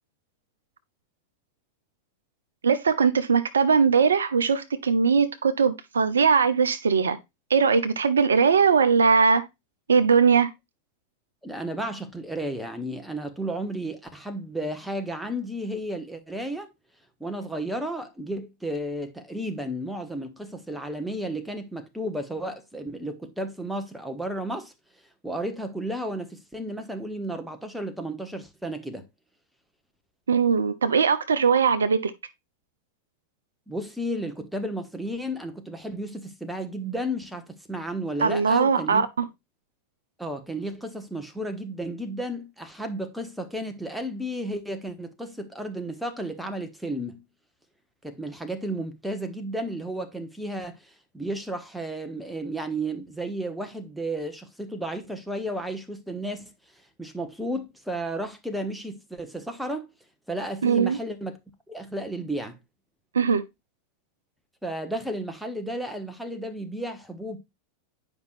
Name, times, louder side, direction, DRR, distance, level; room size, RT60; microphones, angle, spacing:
voice 1, 2.6-7.2 7.5-9.4 9.9-10.5 30.3-32.1 38.2-39.2 60.6-61.0 63.1-63.4, right 5 dB, 70° right, 0.6 m, -20 dB
voice 2, 11.4-16.7 17.2-24.7 25.2-29.1 33.7-39.0 40.2-47.2 48.0-56.4 57.0-59.9 60.3-61.4 61.7-62.6 64.6-67.4, right 1 dB, 5° right, 1.1 m, -33 dB
9.5 x 5.3 x 2.6 m
figure-of-eight pair, 90°, 0 cm